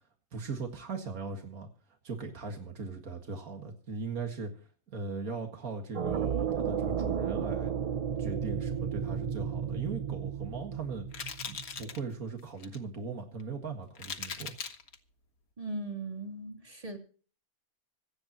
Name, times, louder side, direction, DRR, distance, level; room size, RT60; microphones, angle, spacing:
voice 1, 0.3-1.7 2.0-4.5 4.9-7.7 8.2-11.1 11.5-14.6, right 4 dB, 85° right, 4 dB, 2.3 m, -39 dB
sound 1, 5.9-11.8, right 7 dB, 70° right, 0.3 m, -33 dB
sound 2, 10.2-10.4 11.1-12.0 12.4-12.8 13.4-13.5 13.9-15.0, left 6 dB, 80° left, 1.8 m, -40 dB
voice 2, 15.6-17.0, right 2 dB, 25° right, 3 dB, 3.0 m, -38 dB
25.5 x 9.0 x 3.0 m, 0.41 s
omnidirectional pair, 1.5 m